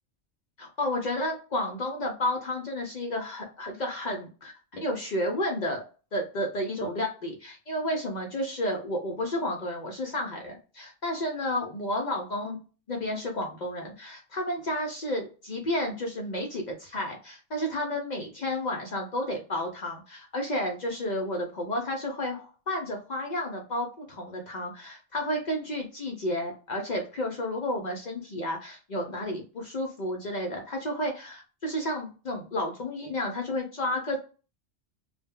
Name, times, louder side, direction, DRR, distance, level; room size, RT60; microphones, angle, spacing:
voice 1, 0.6-5.8 6.1-12.6 12.9-34.2, left 1 dB, 55° left, 2 dB, 0.5 m, -31 dB
2.1 x 2.1 x 3.4 m, 0.35 s
omnidirectional pair, 1.2 m